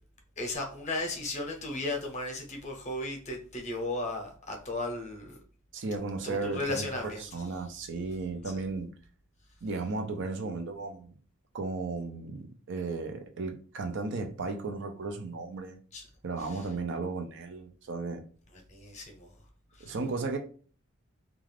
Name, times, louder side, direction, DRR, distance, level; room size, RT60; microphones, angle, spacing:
voice 1, 0.4-5.4 6.2-7.4 15.9-16.1 16.4-16.7 18.5-19.3 19.7-19.9, left 2 dB, 35° left, 0.7 m, -35 dB
voice 2, 5.7-6.9 7.3-8.9 9.6-11.1 11.5-15.8 16.2-18.2 19.8-20.4, right 3 dB, 60° right, 0.5 m, -35 dB
2.4 x 2.3 x 3.2 m
head